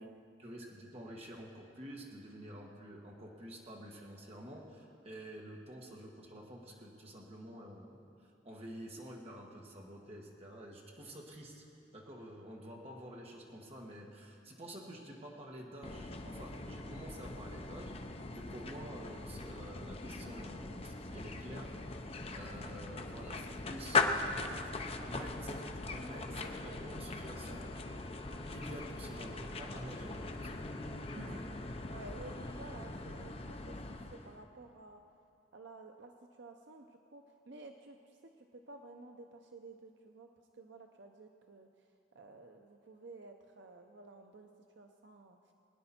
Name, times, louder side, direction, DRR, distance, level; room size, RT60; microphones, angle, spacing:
voice 1, 0.4-8.1 8.4-11.7 11.9-17.9 18.3-22.1 22.3-28.0 28.3-30.8 31.1-31.5, equal, 30° right, -1 dB, 1.7 m, -49 dB
sound 1, 15.8-34.4, left 3 dB, 30° left, 0.6 m, -40 dB
voice 2, 31.9-35.0 35.5-40.3 40.5-41.9 42.1-45.5, right 2 dB, 70° right, 4 dB, 0.6 m, -53 dB
21.5 x 9.8 x 4.3 m, 2.5 s
head